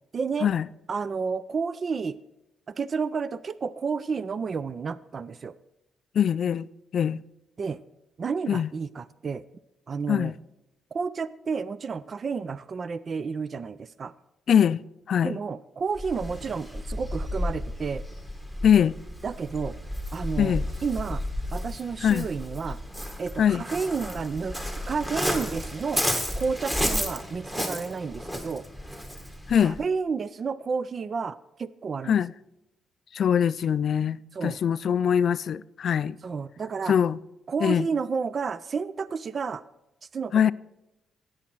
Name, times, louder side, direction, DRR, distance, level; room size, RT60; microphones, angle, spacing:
voice 1, 0.1-0.5 0.9-2.2 2.8-5.5 7.6-7.8 8.2-9.4 9.9-10.3 10.9-14.1 15.2-18.0 19.2-19.8 20.1-20.6 20.8-21.2 21.5-22.8 23.2-24.6 24.9-26.0 26.3-28.6 29.6-32.2 34.3-34.6 36.2-36.9 37.5-39.6 40.1-40.5, right 5 dB, 45° right, 0.4 m, -31 dB
voice 2, 6.1-6.7 6.9-7.2 8.5-8.7 10.1-10.3 14.5-15.4 18.6-19.0 20.4-20.6 22.0-22.3 23.4-23.6 29.5-29.8 32.1-32.3 33.1-36.1 36.9-37.2 37.6-37.9 40.3-40.5, left 8 dB, 60° left, 0.3 m, -23 dB
Waves surf, 15.9-29.8, equal, 10° right, 1.9 m, -32 dB
13.0 x 8.8 x 4.5 m
cardioid pair, 90°, 0 cm